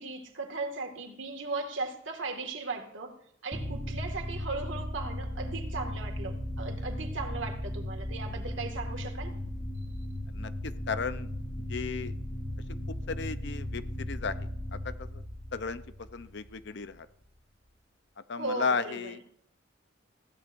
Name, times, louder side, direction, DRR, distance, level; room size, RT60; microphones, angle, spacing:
voice 1, 0.0-3.2 3.4-9.3 18.4-19.2, right 3 dB, 75° right, 3 dB, 2.0 m, -37 dB
sound 1, 3.5-16.9, left 1 dB, 25° left, 3.5 m, -37 dB
voice 2, 10.3-11.3 11.7-12.1 12.9-14.4 14.7-15.2 15.5-15.8 16.1-17.1 18.3-19.2, left 5 dB, 60° left, 12 dB, 0.7 m, -34 dB
21.0 x 16.0 x 2.6 m, 0.66 s
head